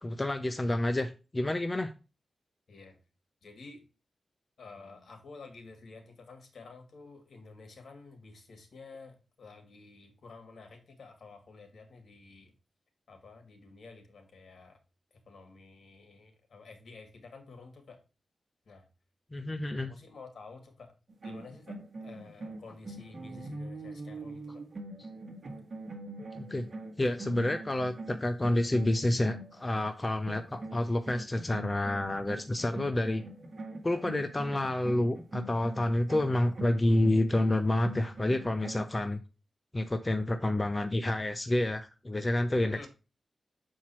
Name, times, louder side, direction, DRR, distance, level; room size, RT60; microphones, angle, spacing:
voice 1, 0.0-1.9 19.3-19.9 26.3-26.6 27.0-33.2 33.8-39.2 39.7-42.9, left 1 dB, 20° left, 7 dB, 0.6 m, -29 dB
voice 2, 3.4-3.8 4.6-12.5 13.1-14.8 15.3-18.0 18.7-18.9 19.9-20.9 21.2-24.6 42.6-42.9, left 4 dB, 65° left, 5 dB, 2.4 m, -51 dB
sound 1, 21.1-29.9 30.3-38.9, right 2 dB, 50° right, 1.6 m, -43 dB
7.1 x 4.6 x 4.3 m, 0.31 s
wide cardioid pair, 135°, 0 cm